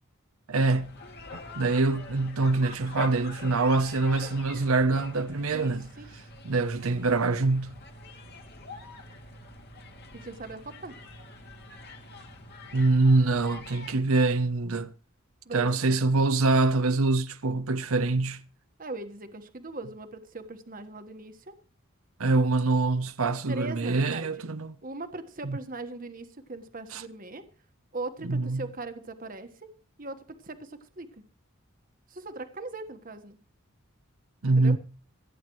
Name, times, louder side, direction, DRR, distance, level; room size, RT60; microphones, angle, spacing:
voice 1, 0.5-0.9 1.6-5.9 6.4-7.7 12.7-14.9 15.5-18.4 22.2-24.7 25.4-25.6 26.9-27.0 28.2-28.6 34.4-34.8, right 3 dB, 80° right, 0.8 m, -24 dB
sound 1, 0.7-13.9, left 3 dB, 50° left, 2.3 m, -45 dB
voice 2, 5.5-6.1 10.1-11.0 15.4-16.0 18.8-21.5 23.5-24.3 24.8-27.4 27.9-29.7 30.0-31.2 32.1-33.4 34.6-34.8, right 2 dB, 40° right, 1.4 m, -40 dB
26.5 x 9.3 x 3.1 m
head